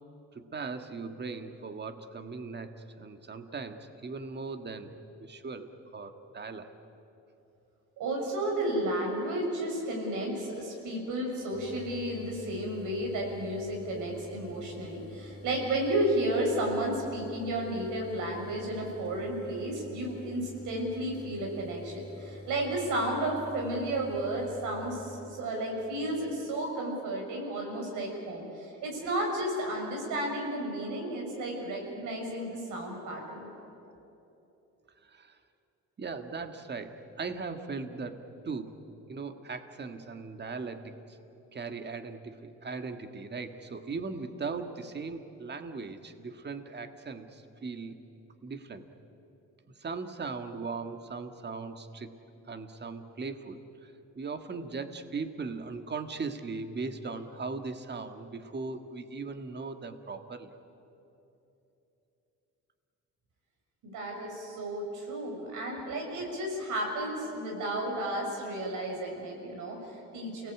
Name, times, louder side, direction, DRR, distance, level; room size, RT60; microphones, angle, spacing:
voice 1, 0.3-6.7 35.0-35.4 36.0-38.8 39.1-41.2 41.5-48.0 48.4-48.9 49.8-52.2 52.5-60.5, right 4 dB, 35° right, 7 dB, 1.8 m, -39 dB
voice 2, 8.0-33.5 63.8-70.5, right 1 dB, 85° right, 0 dB, 6.5 m, -33 dB
sound 1, 11.5-25.5, left 1 dB, 35° left, 3.4 m, -47 dB
29.0 x 18.5 x 8.6 m, 3.0 s
cardioid pair, 90°, 30 cm